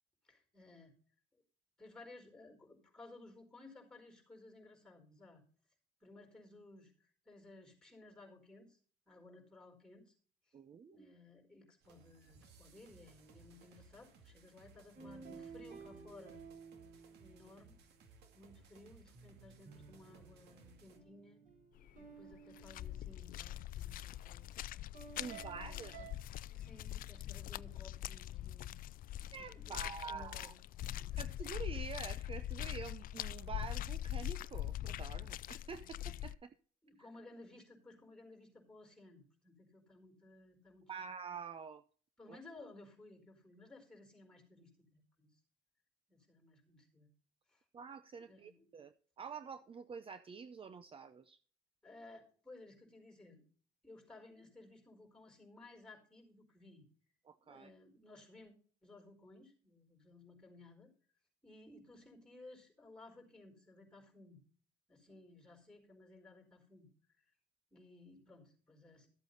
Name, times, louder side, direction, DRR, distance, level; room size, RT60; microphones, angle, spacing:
voice 1, 0.2-0.9 1.8-5.4 6.0-8.8 9.1-10.1 10.5-10.6 10.9-16.4 17.2-17.7 18.3-21.4 22.0-24.5 25.0-26.1 26.5-28.8 29.3-30.6 30.9-31.4 35.8-35.9 36.8-41.1 42.2-45.4 46.1-47.1 47.5-47.6 48.3-48.7 51.8-53.4 53.8-56.9 57.4-58.5 58.8-60.9 61.4-64.4 64.9-66.9 67.7-69.1, left 2 dB, 5° left, 3 dB, 4.6 m, -58 dB
voice 2, 10.5-11.0 25.2-25.9 29.3-30.5 31.2-36.6 37.0-37.1 40.9-41.8 42.3-42.4 47.7-51.4 57.2-57.7, right 6 dB, 35° right, 12 dB, 0.7 m, -47 dB
sound 1, 11.8-21.0, right 4 dB, 75° right, 2.2 m, -62 dB
sound 2, 15.0-17.8 19.1-23.7 24.9-26.1, right 6 dB, 50° right, 3.7 m, -55 dB
sound 3, 21.8-22.0 22.3-36.4, left 13 dB, 55° left, 0.4 m, -43 dB
14.0 x 8.0 x 4.0 m, 0.44 s
cardioid pair, 110°, 17 cm